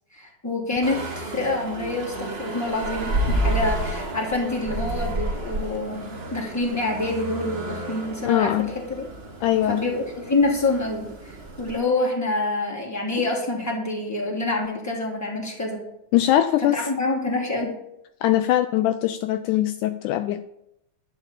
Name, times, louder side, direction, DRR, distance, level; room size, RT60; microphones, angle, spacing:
voice 1, 0.1-9.1 9.7-15.8 16.7-17.7, left 2 dB, 5° left, -2 dB, 2.6 m, -26 dB
sound 1, 0.8-11.8, right 1 dB, 50° right, 0.7 m, -31 dB
voice 2, 8.2-8.7 9.4-9.8 16.1-17.4 18.2-20.4, left 13 dB, 80° left, 10 dB, 2.0 m, -22 dB
11.0 x 5.7 x 8.3 m, 0.82 s
omnidirectional pair, 3.7 m